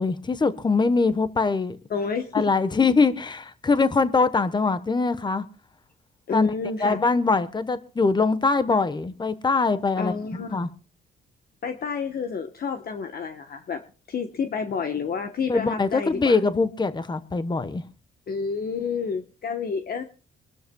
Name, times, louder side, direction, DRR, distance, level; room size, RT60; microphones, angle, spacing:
voice 1, 0.0-1.8 2.3-5.4 6.3-6.5 6.8-10.1 10.5-10.7 15.5-17.8, left 4 dB, 20° left, 1.1 m, -22 dB
voice 2, 1.9-2.5 6.3-7.0 10.0-10.6 11.6-13.8 14.1-16.4 18.3-20.0, left 5 dB, 50° left, 1.1 m, -29 dB
24.5 x 12.5 x 2.3 m
cardioid pair, 90°, 20 cm